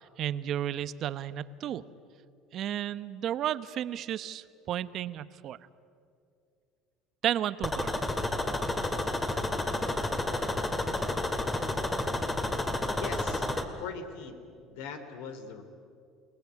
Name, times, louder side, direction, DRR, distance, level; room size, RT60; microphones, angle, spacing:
voice 1, 0.0-1.8 2.5-5.6 7.2-8.0, right 11 dB, 50° right, 14 dB, 0.9 m, -33 dB
sound 1, 7.6-13.6, left 2 dB, 15° left, 2.1 m, -30 dB
voice 2, 12.9-15.6, left 5 dB, 80° left, 8 dB, 3.0 m, -41 dB
29.5 x 18.0 x 9.5 m, 2.4 s
cardioid pair, 125°, 0 cm